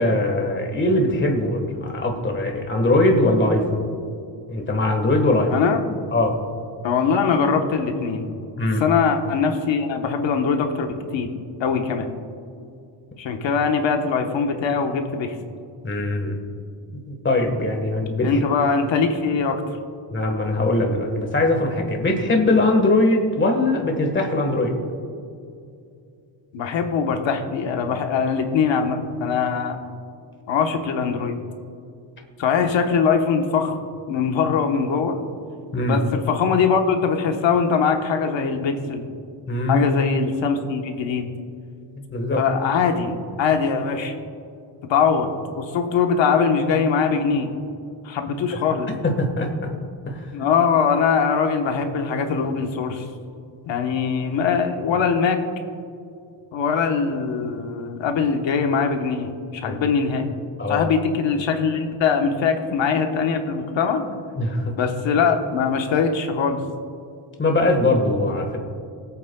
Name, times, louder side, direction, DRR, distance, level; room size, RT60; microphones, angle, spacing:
voice 1, 0.0-3.8 4.5-5.5 6.1-6.4 8.6-8.8 15.8-16.4 17.1-18.4 20.1-24.7 35.7-36.0 39.5-39.8 42.0-42.4 49.0-49.7 50.1-50.3 59.6-59.8 60.6-60.9 64.4-64.7 67.4-68.6, left 2 dB, 25° left, 3 dB, 1.4 m, -21 dB
voice 2, 5.5-5.8 6.8-8.3 8.8-11.3 11.6-12.1 13.2-15.3 18.2-19.6 26.5-29.8 30.5-31.3 32.4-33.7 34.1-35.2 35.9-39.0 39.7-41.3 42.4-44.1 44.9-45.3 45.6-47.5 48.0-48.9 50.3-53.0 53.6-55.4 56.5-60.3 60.7-64.0 64.8-66.6, left 6 dB, 85° left, 4 dB, 1.2 m, -22 dB
24.5 x 8.4 x 2.3 m, 2.5 s
wide cardioid pair, 160°, 44 cm